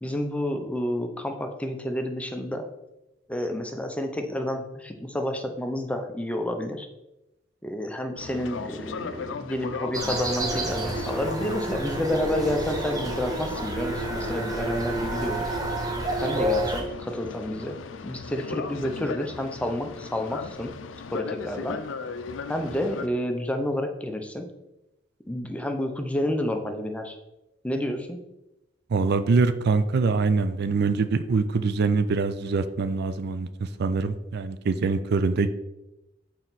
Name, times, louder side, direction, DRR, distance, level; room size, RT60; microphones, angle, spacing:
voice 1, 0.0-2.7 3.3-6.9 7.6-15.6 16.2-17.8 18.0-20.7 21.1-21.8 22.5-24.5 25.3-27.2 27.6-28.2, left 1 dB, 5° left, 5 dB, 0.6 m, -30 dB
Boat Water vehicle, 8.2-23.1, left 5 dB, 80° left, 0.5 m, -38 dB
sound 1, 9.9-16.8, right 1 dB, 20° right, 0.8 m, -29 dB
voice 2, 28.9-35.5, right 4 dB, 60° right, 12 dB, 0.4 m, -24 dB
6.3 x 4.4 x 4.0 m, 0.93 s
head